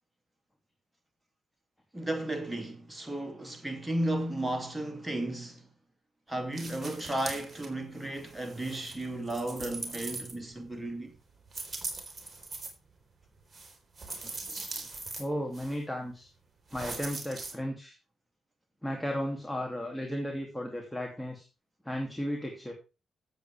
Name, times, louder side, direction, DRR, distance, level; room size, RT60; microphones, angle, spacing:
voice 1, 1.9-5.7 6.3-11.1 14.2-14.4, right 1 dB, 10° right, 2.7 m, -34 dB
sound 1, 6.5-7.7 8.0-10.7 11.5-12.7 13.5-15.2 15.5-15.8 16.7-17.5, right 3 dB, 30° right, 4.0 m, -41 dB
voice 2, 14.4-14.8 15.2-16.3 16.7-18.0 18.8-21.5 21.8-22.7, equal, 5° left, 2.7 m, -35 dB
14.0 x 7.9 x 3.5 m
hypercardioid pair, 40°, 0 cm